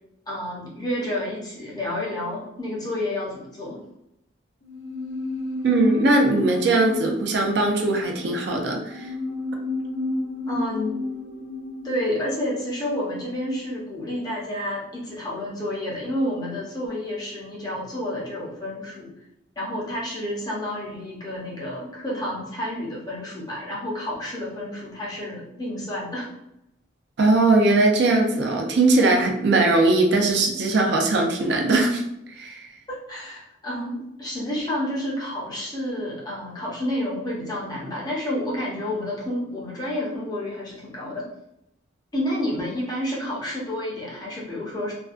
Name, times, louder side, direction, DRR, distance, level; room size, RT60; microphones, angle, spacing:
voice 1, 0.3-3.8 10.5-11.0 11.8-19.1 19.6-26.3 32.9-41.3 42.1-44.9, left 1 dB, 20° left, -5 dB, 0.6 m, -30 dB
sound 1, 4.6-14.0 14.2-14.3, left 2 dB, 80° left, 0.6 m, -33 dB
voice 2, 5.6-9.1 27.2-32.0 32.3-32.7, right 2 dB, 60° right, 2 dB, 0.4 m, -20 dB
2.4 x 2.2 x 2.4 m, 0.81 s
head